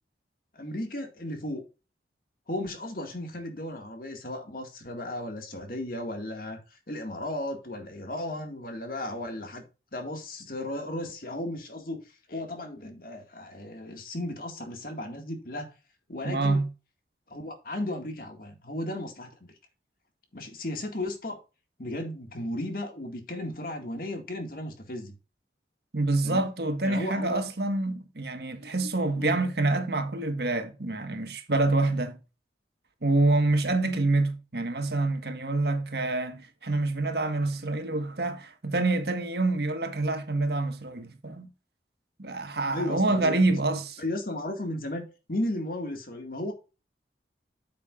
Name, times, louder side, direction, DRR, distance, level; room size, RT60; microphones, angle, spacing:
voice 1, 0.5-1.6 2.5-6.6 6.9-9.6 9.9-12.0 12.3-15.7 16.1-16.6 17.3-19.5 20.3-21.4 21.8-25.1 26.2-26.5 26.8-27.4 29.2-29.4 42.7-43.5 44.0-46.5, left 1 dB, 55° left, 2.0 m, -35 dB
voice 2, 16.2-16.7 25.9-32.2 33.0-41.5 42.2-44.0, right 2 dB, 65° right, 1.5 m, -27 dB
8.7 x 7.8 x 2.5 m
head